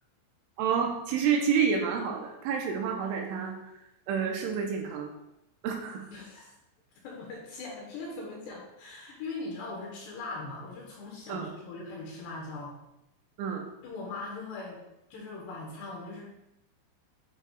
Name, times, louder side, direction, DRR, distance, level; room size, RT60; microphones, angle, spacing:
voice 1, 0.6-3.6 4.1-5.1 5.6-6.1 11.3-11.5 13.4-13.7, right 6 dB, 85° right, 2 dB, 3.0 m, -29 dB
voice 2, 6.1-6.6 7.0-12.7 13.8-14.8 15.1-16.2, left 3 dB, 70° left, -2 dB, 2.8 m, -40 dB
9.9 x 6.6 x 2.3 m, 0.89 s
omnidirectional pair, 5.8 m